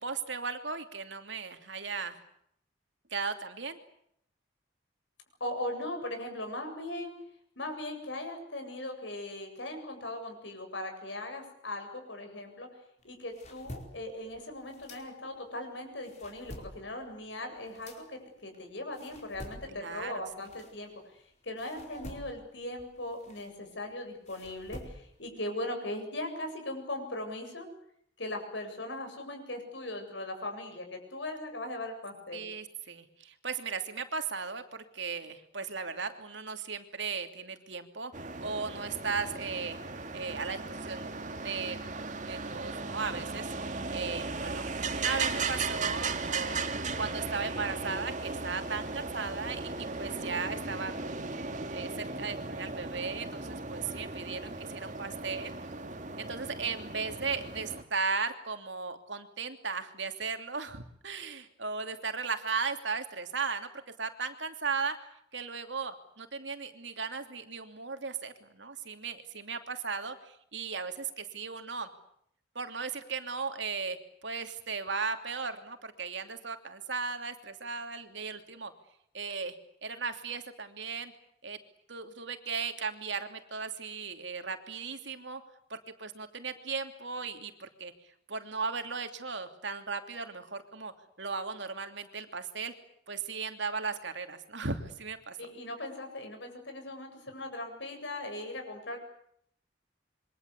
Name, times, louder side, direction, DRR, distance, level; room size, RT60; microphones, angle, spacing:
voice 1, 0.0-2.2 3.1-3.8 19.7-20.2 32.3-38.1 38.4-39.8 40.1-41.1 41.4-41.8 42.3-44.7 44.9-46.6 47.0-51.1 51.7-55.5 56.2-63.7 64.0-65.0 65.3-71.9 72.5-78.7 79.1-79.5 79.8-81.1 81.4-81.6 81.9-85.4 85.7-87.9 88.3-90.9 91.2-92.7 93.1-95.4, right 5 dB, 70° right, 7 dB, 2.9 m, -36 dB
voice 2, 5.4-7.1 7.6-12.7 13.0-27.7 28.2-32.5 95.4-99.0, left 1 dB, 70° left, 5 dB, 7.8 m, -39 dB
sound 1, 13.0-15.5 15.9-21.2 21.6-25.3, left 1 dB, 40° left, 4.8 m, -49 dB
sound 2, 38.1-57.8, right 3 dB, 40° right, 2.3 m, -37 dB
27.5 x 24.0 x 8.4 m, 0.71 s
head